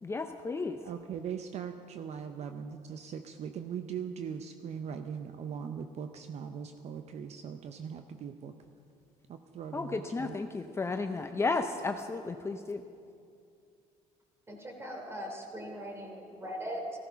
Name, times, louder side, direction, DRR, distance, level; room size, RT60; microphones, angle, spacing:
voice 1, 0.0-0.8 9.7-12.8, left 3 dB, 20° left, 6 dB, 0.6 m, -33 dB
voice 2, 0.9-8.5 9.3-10.3, right 7 dB, 50° right, 8 dB, 0.7 m, -40 dB
voice 3, 14.5-17.0, equal, 20° right, 2 dB, 3.0 m, -40 dB
15.0 x 14.0 x 5.7 m, 2.4 s
cardioid pair, 105°, 14 cm